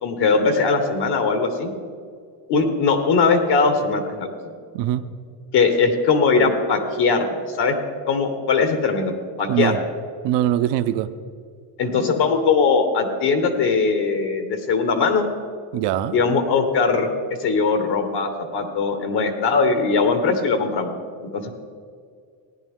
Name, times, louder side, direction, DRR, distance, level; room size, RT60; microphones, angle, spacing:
voice 1, 0.0-1.7 2.5-4.3 5.5-7.7 8.1-9.1 9.4-9.7 11.8-15.3 16.1-17.1 17.4-20.9 21.3-21.5, left 4 dB, 60° left, 7 dB, 1.5 m, -20 dB
voice 2, 4.7-5.0 9.5-9.8 10.2-11.1 15.7-16.2, right 12 dB, 65° right, 11 dB, 0.7 m, -22 dB
16.0 x 10.0 x 3.7 m, 2.1 s
cardioid pair, 125°, 46 cm